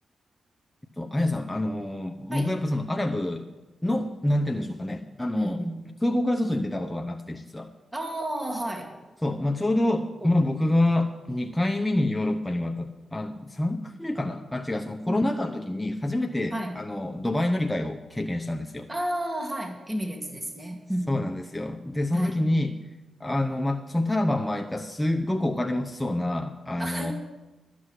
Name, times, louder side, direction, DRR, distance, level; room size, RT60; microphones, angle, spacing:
voice 1, 1.0-3.5 3.8-5.6 6.0-7.7 9.2-18.9 21.1-22.8 23.2-27.1, left 1 dB, 10° left, 3 dB, 0.8 m, -27 dB
voice 2, 5.3-5.8 7.9-9.0 10.2-10.5 15.1-15.2 16.5-16.8 18.9-21.2 22.1-22.4 26.8-27.1, right 1 dB, 20° right, 2 dB, 2.2 m, -31 dB
12.5 x 6.2 x 9.6 m, 1.1 s
cardioid pair, 55°, 0 cm